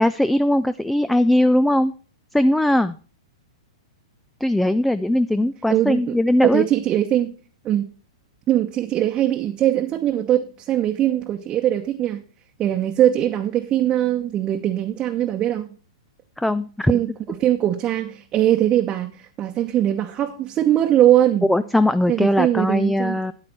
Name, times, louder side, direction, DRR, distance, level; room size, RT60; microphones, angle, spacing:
voice 1, 0.0-1.9 2.3-3.0 4.4-6.7 16.4-16.9 21.5-23.3, left 1 dB, 5° left, 13 dB, 0.4 m, -19 dB
voice 2, 5.7-6.2 6.4-7.3 7.6-7.8 8.5-12.2 12.6-15.7 16.9-21.5 22.1-23.2, right 12 dB, 30° right, 3 dB, 0.9 m, -21 dB
9.6 x 8.8 x 4.3 m, 0.38 s
hypercardioid pair, 115°, 3 cm